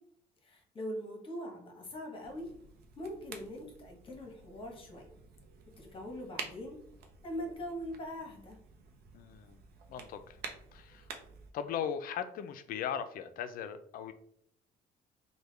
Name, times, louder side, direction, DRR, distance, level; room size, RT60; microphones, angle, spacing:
voice 1, 0.4-2.5 3.0-5.1 5.8-6.8 7.2-8.6, equal, 30° left, 1 dB, 1.0 m, -42 dB
sound 1, 2.2-11.5, right 5 dB, 70° right, 0.6 m, -50 dB
voice 2, 9.1-9.6 9.9-10.4 10.7-11.1 11.5-14.1, left 8 dB, 60° left, 10 dB, 0.4 m, -38 dB
3.4 x 2.2 x 3.2 m, 0.69 s
cardioid pair, 110°, 17 cm